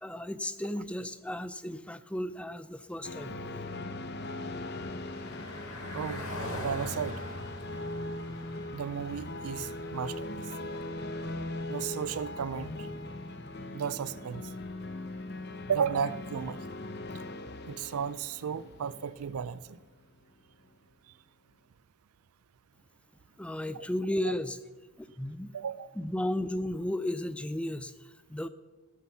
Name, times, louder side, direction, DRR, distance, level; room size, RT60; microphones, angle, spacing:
voice 1, 0.0-3.3 23.4-24.6 25.0-25.5 26.0-28.5, left 1 dB, 5° left, 0.4 m, -34 dB
sound 1, 3.0-19.9, left 2 dB, 50° left, 0.8 m, -40 dB
Car passing by, 3.8-15.1, left 1 dB, 80° left, 3.2 m, -46 dB
voice 2, 5.9-6.3 6.6-7.2 8.7-10.5 11.7-12.9 13.7-14.5 15.7-16.6 17.7-19.8 23.7-23.8 24.3-24.4 25.5-26.0, right 7 dB, 85° right, 0.5 m, -34 dB
18.5 x 8.2 x 5.7 m
head